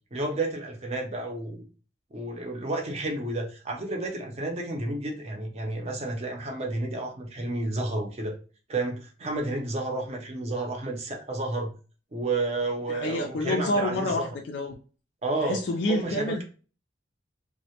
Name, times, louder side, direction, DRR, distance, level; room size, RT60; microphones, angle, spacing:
voice 1, 0.1-1.6 2.1-8.4 8.7-11.7 12.1-14.3 15.2-16.4, right 2 dB, 35° right, 0.5 m, -31 dB
voice 2, 12.9-14.8 15.4-16.4, left 1 dB, 70° left, 0.3 m, -28 dB
2.1 x 2.0 x 2.8 m
head